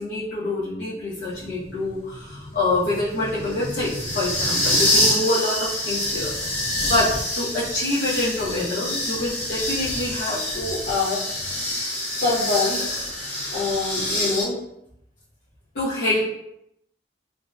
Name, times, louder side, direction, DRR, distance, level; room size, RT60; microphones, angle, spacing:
voice 1, 0.0-6.3 6.8-11.3 12.2-12.8 13.5-14.6 15.7-16.2, left 2 dB, 70° left, -11 dB, 0.7 m, -26 dB
sound 1, 1.3-14.4, left 1 dB, 40° left, 0.9 m, -26 dB
2.6 x 2.2 x 2.3 m, 0.78 s
head